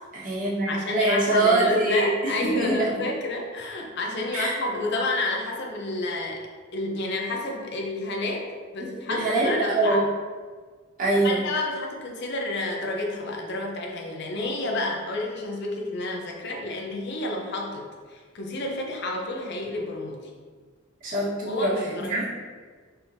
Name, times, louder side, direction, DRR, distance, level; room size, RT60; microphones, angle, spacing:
voice 1, 0.1-2.9 4.3-4.6 9.1-10.0 11.0-11.4 21.0-22.2, right 2 dB, 40° right, -7 dB, 1.2 m, -24 dB
voice 2, 0.7-6.4 6.7-8.4 8.7-10.0 11.2-20.3 21.5-22.2, left 2 dB, 55° left, 0 dB, 0.6 m, -30 dB
4.4 x 3.5 x 2.6 m, 1.5 s
head